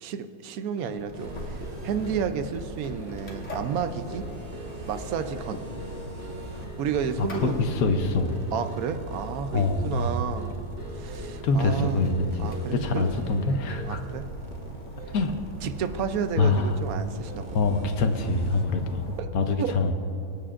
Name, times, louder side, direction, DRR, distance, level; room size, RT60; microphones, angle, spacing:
voice 1, 0.0-4.2 4.9-5.6 6.8-7.6 8.5-10.6 10.9-12.1 12.4-13.1 13.8-14.3 15.6-17.6 19.2-19.3 19.6-19.8, right 7 dB, 70° right, 9 dB, 1.0 m, -31 dB
sound 1, 0.8-14.1, equal, 10° right, 1.2 m, -43 dB
sound 2, 0.9-19.2, right 1 dB, 50° left, 1.7 m, -41 dB
sound 3, 1.1-18.6, right 2 dB, 45° right, 0.5 m, -45 dB
voice 2, 7.2-8.3 9.5-10.2 11.4-14.0 15.1-15.3 16.4-16.8 17.5-19.0 19.3-19.9, left 3 dB, 70° left, 6 dB, 1.2 m, -25 dB
24.5 x 8.6 x 2.5 m, 2.7 s
omnidirectional pair, 1.7 m